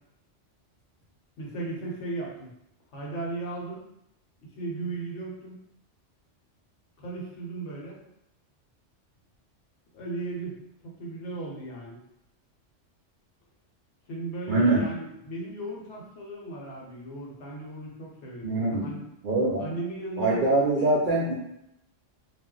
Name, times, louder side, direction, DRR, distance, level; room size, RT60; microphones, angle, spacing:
voice 1, 1.4-2.5 2.9-3.9 4.5-5.6 7.0-8.0 9.9-12.0 14.1-19.0 19.6-21.0, right 2 dB, 70° left, -3 dB, 1.0 m, -36 dB
voice 2, 14.5-14.8 18.4-18.9 19.2-19.6 20.2-21.3, right 2 dB, 60° right, -5 dB, 0.5 m, -23 dB
2.3 x 2.0 x 3.7 m, 0.82 s
omnidirectional pair, 1.3 m